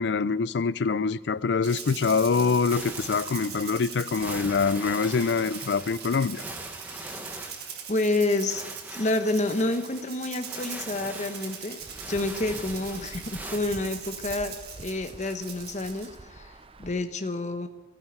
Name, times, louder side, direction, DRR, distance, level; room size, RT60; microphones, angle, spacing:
voice 1, 0.0-6.4, left 5 dB, 70° left, 0.4 m, -25 dB
Rattle (instrument), 1.6-16.2, right 7 dB, 60° right, 1.7 m, -41 dB
sound 1, 2.7-13.6, right 1 dB, 10° right, 1.3 m, -42 dB
voice 2, 7.9-8.6 8.9-11.8 12.1-16.5 16.8-17.7, left 2 dB, 40° left, 1.0 m, -28 dB
Insect / Thunder / Rain, 11.8-17.0, right 2 dB, 30° right, 0.6 m, -46 dB
13.5 x 9.3 x 8.0 m
head